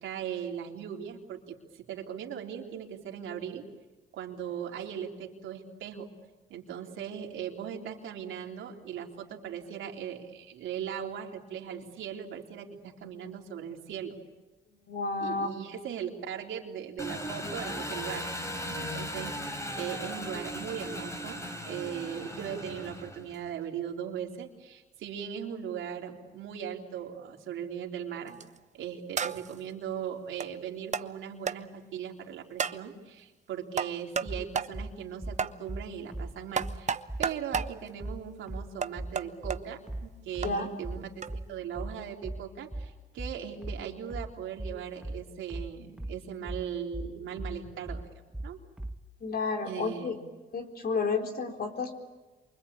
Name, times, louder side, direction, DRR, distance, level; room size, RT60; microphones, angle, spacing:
voice 1, 0.0-3.6 4.1-6.1 6.5-14.2 15.2-18.4 18.7-21.4 21.7-28.4 28.7-48.1 48.4-48.6 49.7-50.2, right 8 dB, 80° right, 1 dB, 3.6 m, -39 dB
voice 2, 14.9-15.5 40.4-40.7 49.2-50.2 50.5-52.0, left 4 dB, 50° left, 3 dB, 4.1 m, -31 dB
Engine, 17.0-23.5, equal, 15° left, 4.1 m, -37 dB
sound 1, 28.3-28.6 29.2-29.6 30.4-30.5 30.9-31.1 31.5-31.6 32.6-32.8 33.8-34.3 34.5-34.7 35.4-35.5 36.5-37.7 38.8-39.6 40.4-40.5 41.2-41.3, right 6 dB, 35° right, 0.9 m, -31 dB
sound 2, 34.2-49.0, right 1 dB, 5° right, 1.3 m, -38 dB
28.5 x 24.0 x 8.6 m, 1.2 s
cardioid pair, 90°, 20 cm